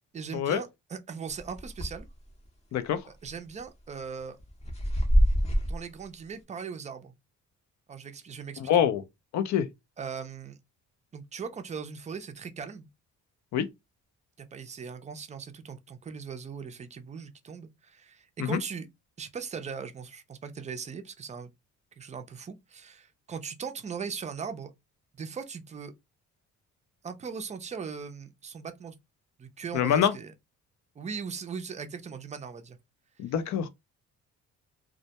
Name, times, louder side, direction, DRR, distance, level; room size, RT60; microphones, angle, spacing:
voice 1, 0.1-2.1 3.1-4.4 5.7-7.1 7.9-8.8 10.0-10.6 11.1-12.9 14.4-18.9 19.2-21.5 22.0-24.7 25.1-25.9 27.0-29.0 29.4-30.3 31.0-32.8, right 6 dB, 25° right, 0.4 m, -39 dB
sound 1, 1.4-2.1 2.5-2.6 3.2-3.6 4.2-5.8, equal, 20° left, 0.6 m, -25 dB
voice 2, 8.6-9.0 9.3-9.7 13.5-13.7 18.4-18.6 29.7-30.1 33.2-33.7, left 9 dB, 65° left, 0.5 m, -25 dB
2.1 x 2.1 x 2.7 m
cardioid pair, 90°, 30 cm